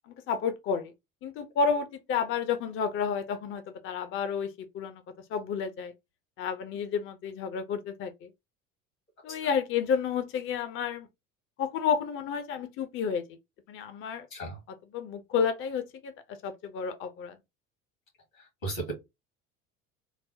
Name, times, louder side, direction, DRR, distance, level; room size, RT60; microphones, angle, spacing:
voice 1, 0.1-0.9 1.2-5.0 5.3-5.9 6.4-8.3 9.2-11.1 11.6-13.4 13.7-14.3 14.7-17.4, left 6 dB, 30° left, 0.5 m, -31 dB
voice 2, 14.3-14.6 18.6-18.9, right 2 dB, 80° left, 1.9 m, -33 dB
3.9 x 2.0 x 2.7 m
figure-of-eight pair, 65°, 40 cm